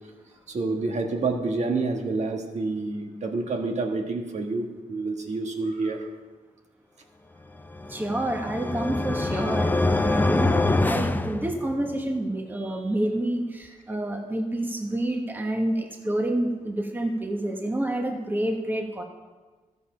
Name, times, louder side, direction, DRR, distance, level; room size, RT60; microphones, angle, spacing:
voice 1, 0.5-6.1, right 3 dB, 50° right, 3 dB, 1.5 m, -28 dB
sound 1, 7.7-12.0, left 2 dB, 10° left, 0.5 m, -25 dB
voice 2, 7.9-19.0, right 1 dB, 15° right, 2 dB, 1.2 m, -28 dB
13.0 x 7.1 x 5.6 m, 1.3 s
cardioid pair, 90°, 15 cm